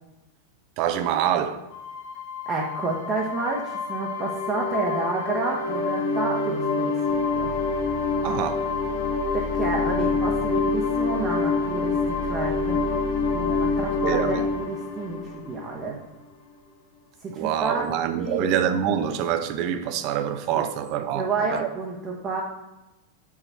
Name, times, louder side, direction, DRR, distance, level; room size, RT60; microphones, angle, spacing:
voice 1, 0.8-1.6 8.2-8.6 14.0-14.5 17.3-21.7, right 9 dB, 45° right, 9 dB, 0.5 m, -26 dB
sound 1, 1.7-16.1, left 4 dB, 50° left, 1.2 m, -26 dB
voice 2, 2.5-7.5 9.3-12.9 13.3-16.0 17.2-17.8 18.2-18.5 20.5-20.6 21.1-22.4, right 3 dB, 25° right, -2 dB, 0.9 m, -30 dB
4.8 x 4.3 x 5.5 m, 1.0 s
figure-of-eight pair, 90°, 0 cm